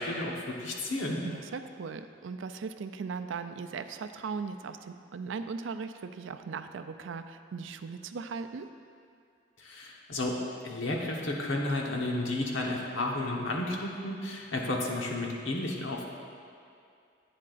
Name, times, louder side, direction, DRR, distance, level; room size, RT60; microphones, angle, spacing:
voice 1, 0.0-1.2 9.6-10.4 10.6-16.1, left 2 dB, 85° left, -1 dB, 1.2 m, -32 dB
voice 2, 1.2-8.7, right 5 dB, 80° right, 9 dB, 0.4 m, -38 dB
11.5 x 8.7 x 2.5 m, 2.4 s
head